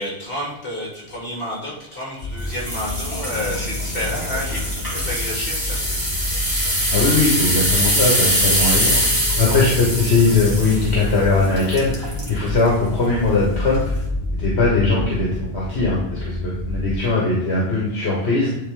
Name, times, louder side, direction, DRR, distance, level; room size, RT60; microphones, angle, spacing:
voice 1, 0.0-6.1, left 1 dB, 60° left, -5 dB, 3.0 m, -30 dB
sound 1, 2.2-16.9, left 2 dB, 35° left, 0.8 m, -29 dB
sound 2, 2.5-12.4 12.9-13.1 13.6-13.7, equal, 20° right, 2.0 m, -23 dB
voice 2, 6.9-9.0 9.4-13.8 14.3-18.5, left 3 dB, 80° left, -4 dB, 1.7 m, -20 dB
9.6 x 3.7 x 3.8 m, 0.92 s
omnidirectional pair, 1.1 m